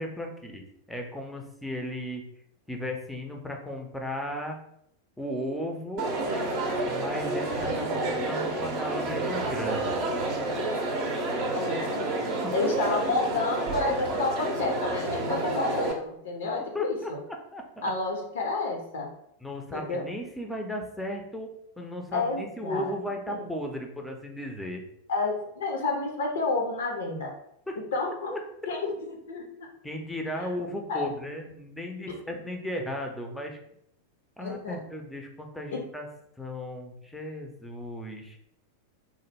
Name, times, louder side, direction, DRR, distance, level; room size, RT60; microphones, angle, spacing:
voice 1, 0.0-2.3 2.7-4.6 5.2-6.1 6.8-10.0 12.4-12.5 16.7-17.1 17.5-17.9 19.4-24.8 27.7-27.8 28.3-28.4 29.8-33.6 34.4-36.1 36.4-38.4, equal, 5° left, 2 dB, 0.5 m, -35 dB
Crowd, 6.0-15.9, right 2 dB, 40° right, 0.6 m, -29 dB
voice 2, 11.5-17.2 17.8-19.1 19.7-20.0 22.1-22.9 23.3-23.5 25.1-27.3 27.9-28.3 28.7-28.9 29.3-29.5 30.4-30.5 30.9-31.1 34.4-34.8 35.7-35.8, left 3 dB, 65° left, 1 dB, 0.5 m, -30 dB
2.9 x 2.0 x 3.3 m, 0.73 s
figure-of-eight pair, 90°, 0 cm